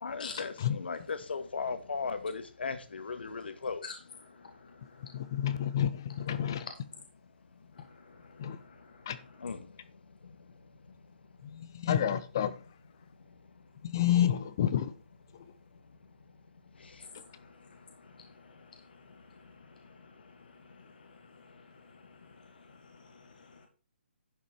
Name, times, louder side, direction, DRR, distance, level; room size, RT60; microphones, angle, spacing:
voice 1, 0.0-3.8 9.4-9.7, left 5 dB, 65° left, 1.6 m, -36 dB
voice 2, 4.3-5.6 6.5-6.7 7.8-8.2 8.4-9.3 17.1-17.4 17.7-17.8 18.1-18.3 18.5-18.8 19.9-20.1 20.4-22.4 22.7-23.7, left 5 dB, 50° left, 1.6 m, -50 dB
voice 3, 5.4-5.9 6.3-6.6 8.4-8.6 9.1-9.2 11.9-12.5 13.9-14.8, left 10 dB, 20° left, 0.5 m, -27 dB
11.0 x 5.9 x 4.4 m
hypercardioid pair, 175°, 6 cm